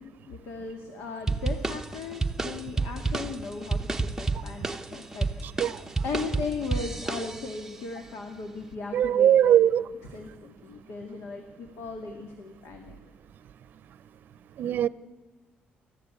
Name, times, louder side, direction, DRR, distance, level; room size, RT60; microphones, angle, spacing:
voice 1, 0.0-5.6 6.0-9.6 10.1-13.0, left 4 dB, 70° left, 2.2 m, -37 dB
sound 1, 1.3-7.7, right 3 dB, 10° right, 0.8 m, -30 dB
voice 2, 5.4-5.8 8.9-9.9 14.6-14.9, right 10 dB, 55° right, 0.7 m, -21 dB
28.0 x 14.5 x 8.4 m
cardioid pair, 155°, 4 cm